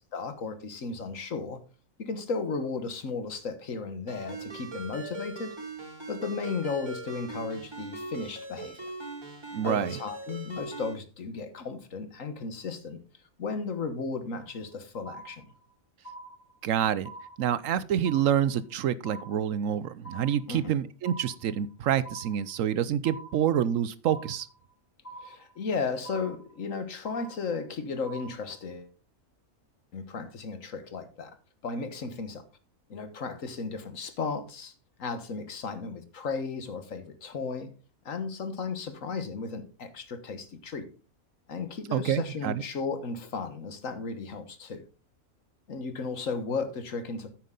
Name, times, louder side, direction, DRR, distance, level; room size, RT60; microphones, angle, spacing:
voice 1, 0.1-1.6 2.0-5.6 6.1-8.9 9.6-13.0 13.4-15.5 20.5-20.7 25.2-28.9 29.9-31.3 31.6-32.4 32.9-34.7 35.0-37.7 38.0-40.9 41.5-44.8 45.7-47.3, left 4 dB, 65° left, 1.7 m, -35 dB
Ringtone, 4.1-10.9, right 3 dB, 20° right, 4.5 m, -40 dB
voice 2, 9.5-10.0 16.6-17.1 17.4-24.5 41.9-42.6, right 9 dB, 70° right, 1.0 m, -27 dB
sound 1, 14.4-14.7 15.0-15.7 16.0-16.7 17.0-17.7 18.0-18.7 19.0-19.7 20.0-20.7 21.0-21.7 22.0-22.7 23.0-23.7 24.0-24.7 25.0-25.7 26.0-26.7 27.0-27.7 28.0-28.7, right 2 dB, 40° left, 3.7 m, -46 dB
9.3 x 9.2 x 3.8 m
omnidirectional pair, 1.5 m